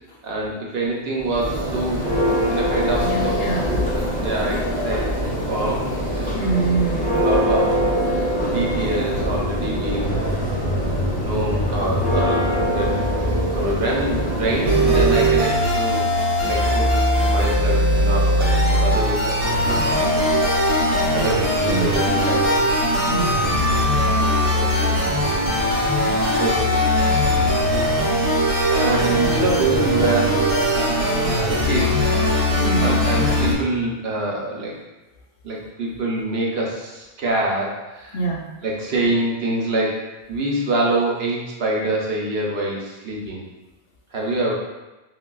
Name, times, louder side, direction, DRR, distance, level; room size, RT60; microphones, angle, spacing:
voice 1, 0.2-3.5 3.9-5.2 5.5-6.5 7.2-7.8 8.1-10.2 10.5-10.8 11.2-12.9 13.5-16.1 16.4-16.9 17.3-20.5 21.1-22.7 24.5-25.0 26.4-27.2 28.7-30.5 31.3-32.2 32.8-34.8 35.4-38.2 38.6-43.4 44.1-44.5, right 2 dB, 70° right, -2 dB, 0.9 m, -26 dB
Church bell, 1.2-15.4, equal, 10° left, 0.5 m, -23 dB
voice 2, 3.0-3.8 6.3-7.1 21.7-21.9 23.0-23.6 32.6-33.0 38.1-38.4, right 3 dB, 70° left, -2 dB, 0.8 m, -25 dB
sound 1, 14.7-33.5, equal, 40° right, 0.7 m, -20 dB
3.8 x 2.2 x 2.2 m, 1.1 s
omnidirectional pair, 1.1 m